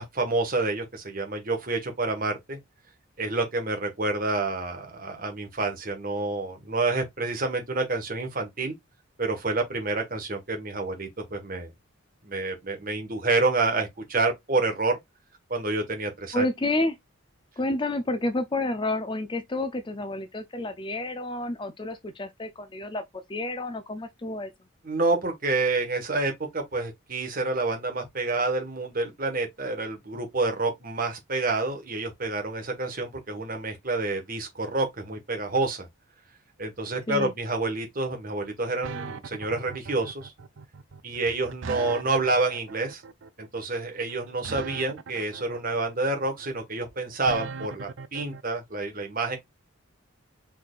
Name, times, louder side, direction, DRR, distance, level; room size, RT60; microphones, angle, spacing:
voice 1, 0.0-2.6 3.2-8.7 9.2-11.7 12.2-15.0 15.5-16.4 24.8-35.9 36.6-40.3 41.0-43.0 43.4-49.4, right 3 dB, 40° right, 1.5 m, -28 dB
voice 2, 16.3-17.0 17.6-23.0 23.3-24.5 37.1-37.3, left 2 dB, 20° left, 0.5 m, -29 dB
sound 1, 38.8-48.4, right 5 dB, 60° right, 0.5 m, -39 dB
4.5 x 4.1 x 2.4 m
head